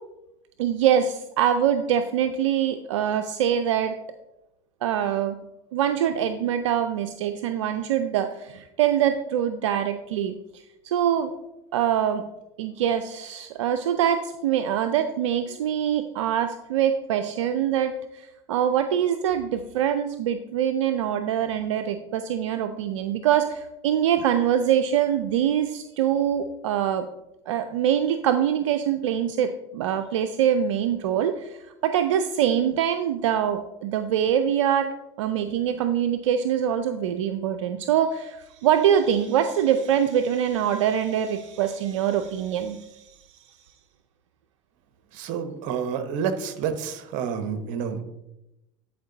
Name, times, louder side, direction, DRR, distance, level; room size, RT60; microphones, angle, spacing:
voice 1, 0.6-4.0 4.8-5.4 5.7-10.4 10.8-11.3 11.7-12.2 12.6-27.1 27.5-34.9 35.2-43.1, right 9 dB, 85° right, 8 dB, 0.5 m, -24 dB
voice 2, 45.1-48.0, right 7 dB, 60° right, 10 dB, 1.0 m, -29 dB
10.0 x 4.6 x 3.9 m, 0.92 s
hypercardioid pair, 85°, 16 cm